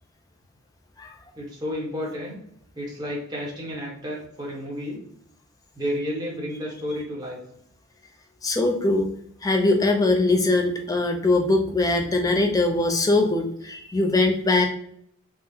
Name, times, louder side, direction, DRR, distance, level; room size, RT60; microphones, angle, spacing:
voice 1, 1.4-2.4 2.7-5.0 5.7-7.4, equal, 20° right, -4 dB, 0.9 m, -31 dB
voice 2, 8.4-9.1 9.4-14.7, left 2 dB, 15° left, 3 dB, 0.4 m, -21 dB
3.6 x 2.0 x 2.7 m, 0.69 s
head